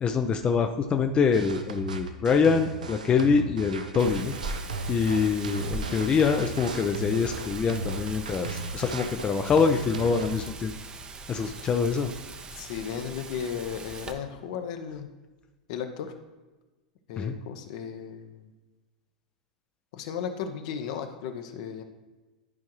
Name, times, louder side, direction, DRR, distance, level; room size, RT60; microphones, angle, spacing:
voice 1, 0.0-4.3 4.9-10.7 11.3-12.1 17.2-17.3, left 5 dB, 25° left, 6 dB, 0.5 m, -25 dB
sound 1, 1.3-10.3, right 3 dB, 85° right, 0.7 m, -36 dB
Wind, 4.0-14.1, right 3 dB, 20° right, 0.7 m, -40 dB
voice 2, 12.5-15.1 15.7-16.1 17.1-18.5 19.9-21.8, left 7 dB, 60° left, 7 dB, 0.8 m, -35 dB
11.0 x 4.7 x 3.0 m, 1.2 s
hypercardioid pair, 100°, 4 cm